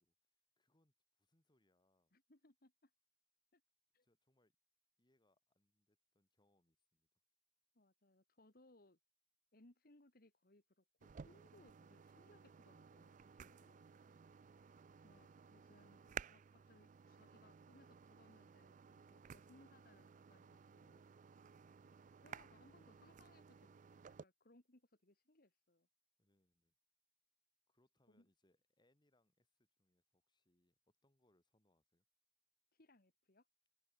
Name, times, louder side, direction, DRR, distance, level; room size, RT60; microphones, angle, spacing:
voice 1, 0.0-2.1 4.0-4.6 5.0-7.1 13.5-14.2 26.2-26.7 27.7-32.0, left 1 dB, 25° left, 3.0 m, -81 dB
voice 2, 2.1-2.9 3.5-3.6 3.9-4.1 7.7-9.0 9.5-13.8 15.0-21.1 22.2-25.9 28.1-28.3 32.7-33.5, left 2 dB, 55° left, 2.3 m, -69 dB
sound 1, 11.0-24.2, right 7 dB, 45° right, 0.4 m, -56 dB
head